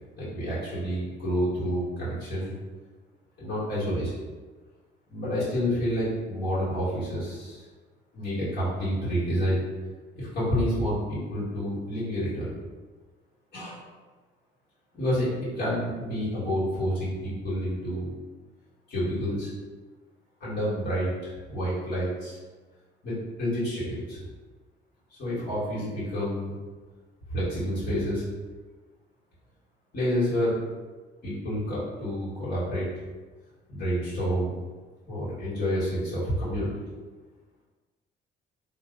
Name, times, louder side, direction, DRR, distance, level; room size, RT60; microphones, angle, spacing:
voice 1, 0.2-2.6 3.4-4.1 5.1-7.6 8.1-9.6 10.1-12.5 13.5-13.8 14.9-15.3 15.5-18.1 18.9-19.5 20.4-22.4 23.0-24.2 25.2-26.5 27.3-28.2 29.9-30.5 31.2-32.9 33.7-34.5 35.1-36.8, equal, 60° left, -11 dB, 1.4 m, -29 dB
2.8 x 2.0 x 3.7 m, 1.3 s
cardioid pair, 90°, 20 cm